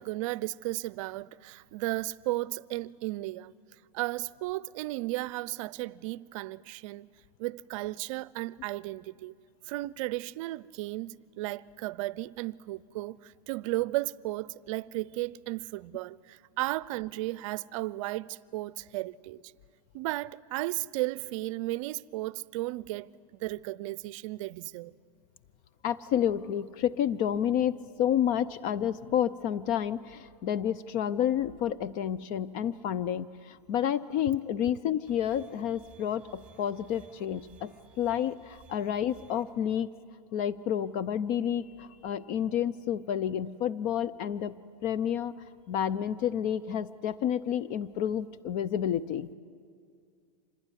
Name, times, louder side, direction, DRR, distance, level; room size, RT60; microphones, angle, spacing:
voice 1, 0.0-3.5 3.9-7.1 7.4-9.3 9.7-19.4 19.9-23.1 23.4-24.9, right 18 dB, 55° right, 0.6 m, -34 dB
voice 2, 25.8-39.9 40.3-44.6 44.8-45.3 45.7-49.3, left 9 dB, 40° left, 0.6 m, -30 dB
sound 1, 35.1-39.4, right 6 dB, 5° right, 3.5 m, -57 dB
26.0 x 19.5 x 9.9 m
hypercardioid pair, 125°, 20 cm